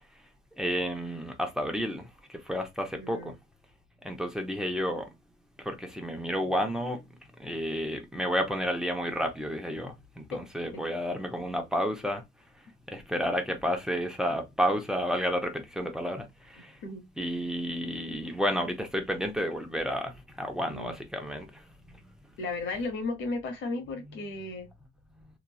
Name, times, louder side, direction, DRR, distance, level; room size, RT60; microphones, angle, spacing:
voice 1, 0.6-3.3 4.0-5.1 5.6-7.0 7.4-12.2 12.9-16.8 17.2-21.6, equal, 5° right, 0.8 m, -31 dB
voice 2, 3.0-3.3 10.3-10.4 10.7-10.8 16.8-17.0 20.7-21.0 22.4-24.7, left 3 dB, 75° left, 1.2 m, -35 dB
3.0 x 2.4 x 2.3 m
cardioid pair, 90°, 20 cm